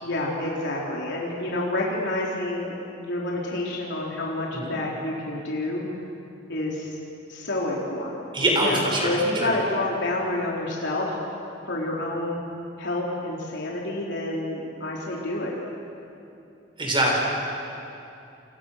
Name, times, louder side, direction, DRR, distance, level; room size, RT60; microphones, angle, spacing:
voice 1, 0.0-5.9 6.5-7.0 7.3-8.3 8.6-11.2 11.7-12.4 12.8-15.5, left 1 dB, 65° left, -4 dB, 4.3 m, -28 dB
voice 2, 8.3-9.6 16.8-17.2, right 1 dB, 25° right, -1 dB, 6.6 m, -24 dB
29.5 x 29.0 x 6.7 m, 2.7 s
head